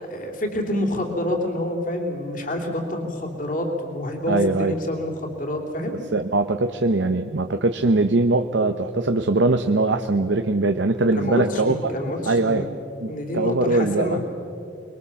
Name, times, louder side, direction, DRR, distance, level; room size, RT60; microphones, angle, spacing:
voice 1, 0.0-6.0 11.1-12.7 13.1-14.2, left 1 dB, 45° left, 2 dB, 3.2 m, -27 dB
voice 2, 4.3-4.7 6.1-11.9 12.3-12.7 13.0-14.2, right 2 dB, 75° right, 7 dB, 0.8 m, -21 dB
25.5 x 22.5 x 7.2 m, 2.5 s
head